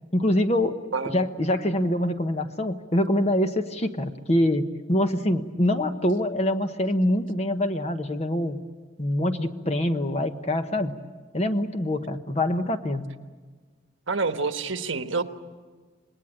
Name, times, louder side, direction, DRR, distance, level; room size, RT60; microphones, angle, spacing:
voice 1, 0.1-0.8 1.1-8.6 9.0-10.9 11.3-13.1, left 1 dB, 30° left, 7 dB, 1.1 m, -25 dB
voice 2, 14.1-15.2, right 4 dB, 75° right, 7 dB, 1.3 m, -27 dB
26.5 x 20.0 x 8.9 m, 1.4 s
head